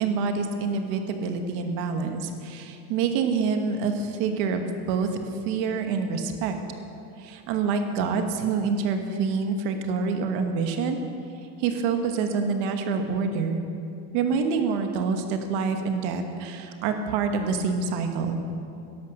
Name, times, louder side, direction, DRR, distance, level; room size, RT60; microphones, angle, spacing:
voice 1, 0.0-5.1 5.4-6.5 7.2-11.0 11.6-13.6 14.1-18.4, right 5 dB, 60° right, 6 dB, 1.4 m, -26 dB
12.5 x 11.0 x 6.4 m, 2.6 s
cardioid pair, 170°, 46 cm